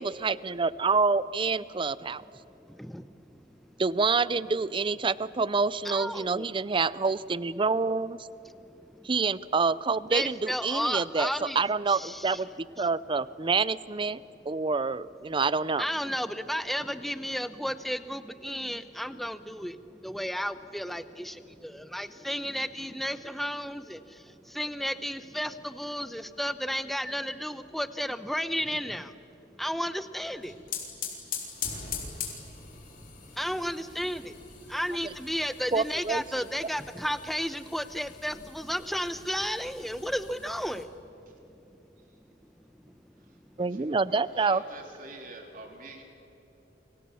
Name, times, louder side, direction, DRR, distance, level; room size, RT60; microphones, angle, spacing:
voice 1, 0.0-2.2 3.8-8.2 9.0-14.2 14.5-15.8 35.0-35.1 35.7-36.5 43.6-44.6, right 4 dB, 25° right, 18 dB, 0.5 m, -27 dB
voice 2, 2.7-3.5 3.7-3.8 5.8-6.5 8.6-9.1 10.1-11.6 11.9-12.4 12.8-12.9 15.8-29.2 29.5-30.8 33.3-41.1, equal, ahead, 12 dB, 0.8 m, -33 dB
sound 1, 30.2-40.8, left 6 dB, 45° left, 4.0 m, -42 dB
voice 3, 43.5-46.0, right 2 dB, 45° right, 2 dB, 3.6 m, -46 dB
29.5 x 25.0 x 7.0 m, 2.9 s
head